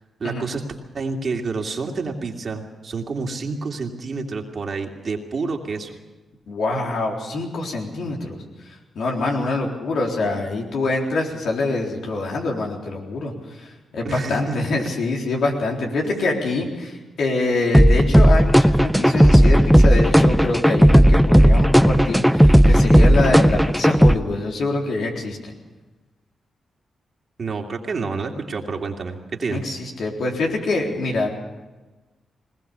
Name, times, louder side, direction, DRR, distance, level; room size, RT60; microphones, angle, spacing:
voice 1, 0.2-0.6 0.9-5.9 14.0-14.9 16.0-16.4 27.4-29.6, right 4 dB, 55° right, 2 dB, 2.7 m, -28 dB
voice 2, 6.5-8.4 8.7-25.5 29.5-31.3, left 2 dB, 75° left, 0 dB, 3.9 m, -25 dB
sound 1, 17.7-24.1, equal, ahead, 0.6 m, -13 dB
20.0 x 19.5 x 7.0 m, 1.2 s
supercardioid pair, 50°, 0 cm